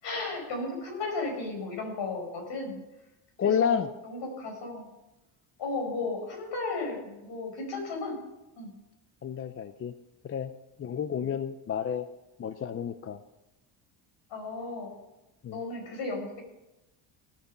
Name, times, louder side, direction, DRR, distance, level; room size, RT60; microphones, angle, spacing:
voice 1, 0.0-2.8 3.4-4.9 5.6-8.2 8.6-8.7 11.1-11.2 14.3-14.9 15.5-16.4, left 3 dB, 65° left, 1 dB, 5.1 m, -35 dB
voice 2, 3.4-3.9 9.2-9.9 10.2-10.5 10.8-12.1 12.4-13.2 15.4-15.6, left 8 dB, 30° left, 12 dB, 0.5 m, -30 dB
17.5 x 6.8 x 5.5 m, 0.97 s
supercardioid pair, 85°, 46 cm